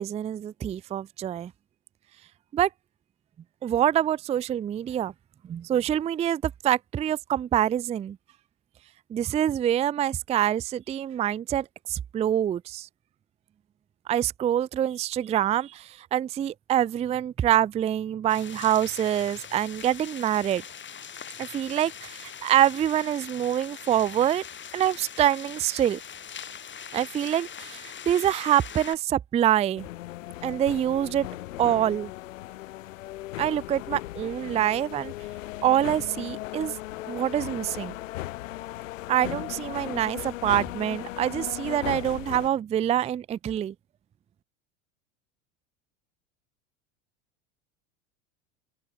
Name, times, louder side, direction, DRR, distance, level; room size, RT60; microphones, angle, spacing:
voice 1, 0.0-1.5 2.5-2.7 3.6-5.1 5.5-8.2 9.1-12.9 14.1-20.6 21.4-24.4 24.7-26.0 26.9-29.9 30.4-31.3 31.6-32.1 33.4-35.1 35.6-36.7 37.1-37.9 39.1-43.7, right 11 dB, 20° right, 0.4 m, -25 dB
sound 1, 18.3-29.0, left 8 dB, 30° left, 4.0 m, -42 dB
sound 2, 29.8-42.5, left 16 dB, 85° left, 2.9 m, -37 dB
open air
supercardioid pair, 100°, 38 cm